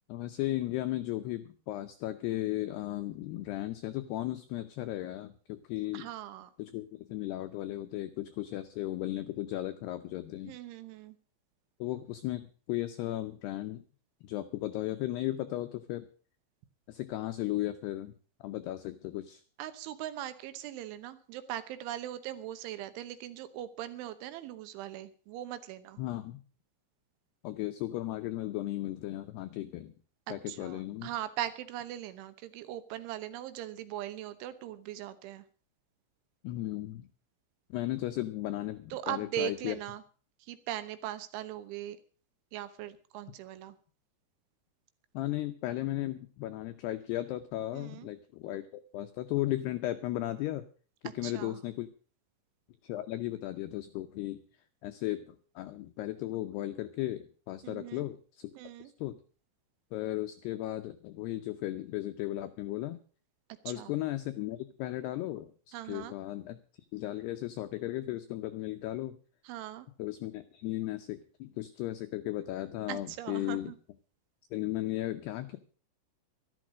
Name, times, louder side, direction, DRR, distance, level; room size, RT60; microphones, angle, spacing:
voice 1, 0.1-6.1 6.6-10.6 11.8-12.4 12.7-13.8 14.2-16.1 16.9-18.1 18.4-19.4 26.0-26.4 27.4-29.9 30.3-31.1 36.4-37.1 37.7-39.8 45.1-50.6 51.1-51.9 52.8-54.4 54.8-58.5 59.0-59.2 59.9-63.0 63.6-66.6 66.9-69.2 70.0-73.7 74.5-75.6, left 15 dB, 85° left, 9 dB, 2.3 m, -35 dB
voice 2, 5.9-6.5 10.5-11.2 19.6-26.0 30.3-35.4 38.9-40.0 40.5-42.0 42.5-43.7 47.7-48.1 51.2-51.6 57.6-58.1 58.6-58.9 63.7-63.9 65.7-66.1 69.5-69.9 72.9-73.8, right 12 dB, 80° right, 12 dB, 3.3 m, -40 dB
12.5 x 12.5 x 6.2 m, 0.40 s
omnidirectional pair, 5.7 m